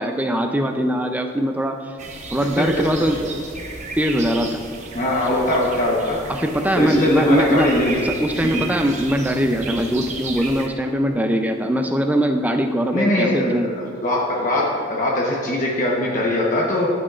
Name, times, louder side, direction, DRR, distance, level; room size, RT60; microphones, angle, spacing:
voice 1, 0.0-1.8 2.3-3.4 4.0-4.6 6.3-7.7 8.0-13.7, equal, 10° right, 5 dB, 0.4 m, -21 dB
sound 1, 2.0-10.7, right 3 dB, 35° right, 0.8 m, -34 dB
voice 2, 4.9-6.2 6.8-8.0 8.4-8.7 12.9-16.9, left 1 dB, 40° left, -3 dB, 1.0 m, -21 dB
12.0 x 8.2 x 2.5 m, 2.1 s
head